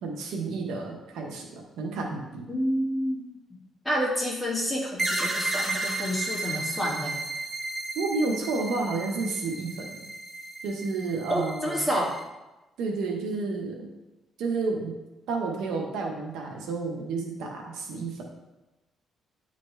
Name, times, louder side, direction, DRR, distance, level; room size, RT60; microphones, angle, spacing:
voice 1, 0.0-2.5 7.9-10.0 10.6-11.8 12.8-13.9 14.4-14.9 15.3-18.2, right 3 dB, 90° right, 1 dB, 1.3 m, -31 dB
voice 2, 2.5-3.3 3.8-7.2 11.3-12.1, equal, 5° left, -4 dB, 2.4 m, -28 dB
sound 1, 5.0-12.2, right 2 dB, 30° right, 2.0 m, -33 dB
10.5 x 4.0 x 3.4 m, 1.0 s
cardioid pair, 90°, 0 cm